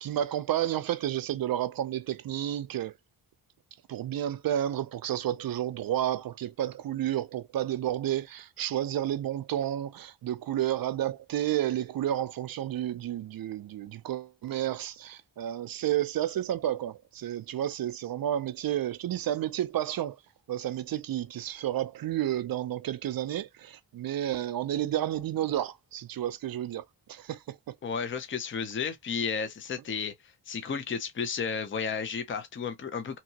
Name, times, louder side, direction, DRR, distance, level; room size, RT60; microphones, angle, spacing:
voice 1, 0.0-2.9 3.9-20.2 20.5-26.8 27.1-27.7, right 12 dB, 60° right, 0.5 m, -31 dB
voice 2, 27.8-30.1 30.5-33.2, left 6 dB, 30° left, 0.6 m, -32 dB
2.8 x 2.7 x 2.8 m
wide cardioid pair, 130°, 41 cm